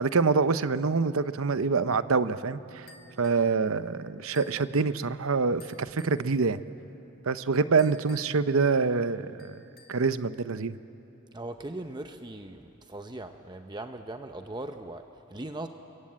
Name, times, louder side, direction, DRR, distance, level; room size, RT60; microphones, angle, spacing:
voice 1, 0.0-2.9 3.2-6.6 7.2-9.6 9.9-10.8, right 4 dB, 70° right, 13 dB, 0.7 m, -26 dB
sound 1, 1.4-4.4, right 2 dB, 15° left, 6.5 m, -56 dB
sound 2, 2.9-3.5 4.3-4.7 5.6-6.2 7.8-8.5 9.4-10.1, left 4 dB, 45° left, 2.2 m, -54 dB
voice 2, 11.3-15.7, right 2 dB, 20° right, 6 dB, 0.7 m, -39 dB
28.0 x 23.0 x 8.7 m, 2.9 s
head